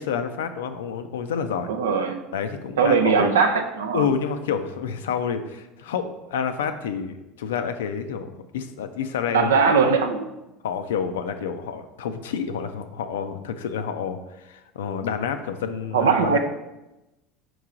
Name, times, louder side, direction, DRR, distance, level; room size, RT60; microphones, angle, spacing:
voice 1, 0.0-1.7 2.3-3.3 3.9-9.7 10.6-16.4, left 7 dB, 85° left, 9 dB, 0.3 m, -29 dB
voice 2, 1.7-2.2 2.8-4.1 9.3-10.3 15.9-16.4, right 5 dB, 90° right, 6 dB, 0.4 m, -20 dB
4.6 x 3.1 x 3.7 m, 0.98 s
hypercardioid pair, 85°, 0 cm